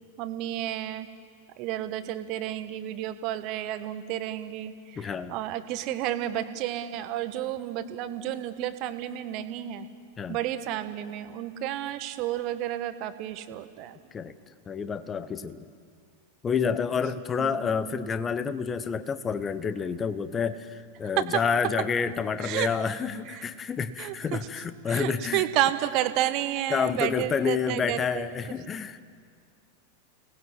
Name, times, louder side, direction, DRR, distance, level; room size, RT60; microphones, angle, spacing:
voice 1, 0.2-1.1 1.6-9.9 10.3-14.0 17.4-18.1 21.2-21.4 22.4-22.7 23.2-23.5 24.0-24.5 24.9-28.3, right 13 dB, 40° right, 11 dB, 1.4 m, -31 dB
voice 2, 5.0-5.3 10.2-10.4 14.1-14.3 14.7-15.7 16.4-25.4 26.7-29.0, left 6 dB, 20° left, 13 dB, 1.1 m, -29 dB
30.0 x 19.0 x 7.5 m, 2.1 s
figure-of-eight pair, 90°, 0 cm